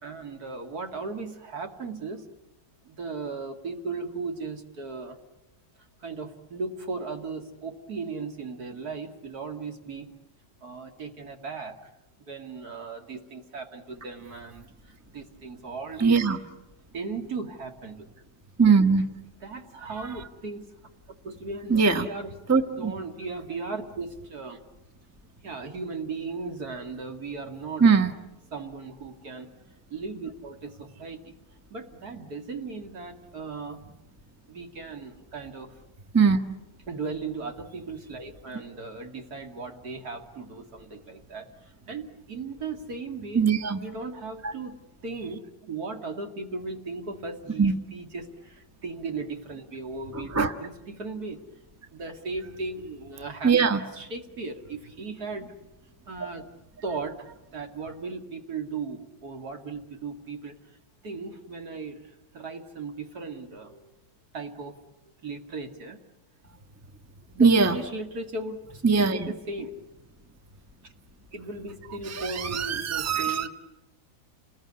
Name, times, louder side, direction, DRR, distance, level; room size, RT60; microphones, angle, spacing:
voice 1, 0.0-2.3 2.8-5.2 6.0-10.1 10.6-11.9 12.2-16.2 16.9-18.1 18.9-19.0 19.4-20.7 21.2-24.6 25.4-27.9 28.5-29.5 29.9-31.2 31.7-33.8 34.5-35.7 36.9-43.5 43.8-44.8 45.0-51.4 51.9-55.5 56.1-56.4 56.8-60.6 61.0-63.9 64.3-64.8 65.2-66.0 67.3-69.7 70.8-70.9 71.3-73.5, right 4 dB, 60° right, 4 dB, 2.7 m, -37 dB
voice 2, 16.0-16.4 18.6-19.0 21.7-22.1 22.5-22.9 27.8-28.1 36.1-36.4 43.3-43.8 44.4-44.5 47.6-47.7 50.3-50.5 53.4-53.8 67.4-67.8 68.8-69.3 72.1-73.5, right 5 dB, 10° right, 8 dB, 1.0 m, -21 dB
29.5 x 20.5 x 9.7 m, 0.99 s
omnidirectional pair, 1.9 m